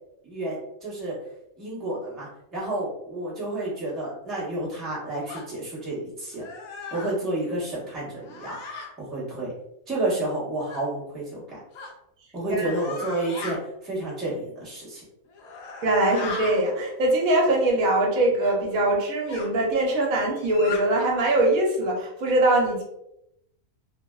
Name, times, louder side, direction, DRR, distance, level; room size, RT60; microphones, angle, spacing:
voice 1, 0.2-1.2 1.6-6.4 6.9-8.6 9.0-9.5 9.9-11.6 12.3-15.0, right 2 dB, ahead, -8 dB, 0.6 m, -30 dB
sound 1, 5.3-5.5 6.3-7.1 8.2-8.9 10.7-10.8 11.7-11.9 12.6-13.6 15.3-16.6 18.4-18.6 19.3-19.5 20.3-20.8, left 4 dB, 80° left, 1.0 m, -37 dB
voice 2, 15.8-22.8, right 1 dB, 75° right, -1 dB, 1.1 m, -22 dB
2.7 x 2.0 x 2.2 m, 0.81 s
omnidirectional pair, 1.5 m